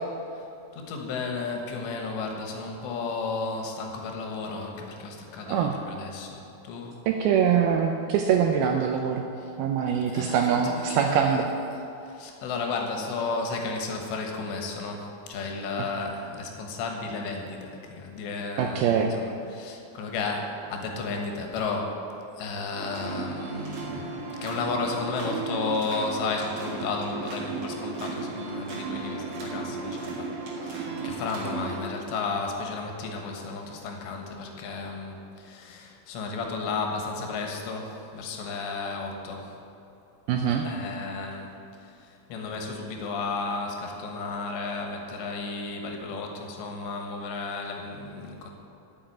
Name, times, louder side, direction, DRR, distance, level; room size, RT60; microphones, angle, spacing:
voice 1, 0.7-7.0 9.4-9.5 10.1-11.4 12.0-22.0 22.4-39.6 40.6-41.5 41.8-48.5, left 4 dB, 85° left, 2 dB, 3.5 m, -33 dB
voice 2, 7.1-9.2 9.6-11.5 18.6-19.1 40.3-40.7, right 7 dB, 85° right, 3 dB, 2.2 m, -23 dB
sound 1, 22.7-31.8, right 4 dB, 55° right, 2.8 m, -35 dB
8.9 x 7.7 x 9.1 m, 2.7 s
omnidirectional pair, 5.0 m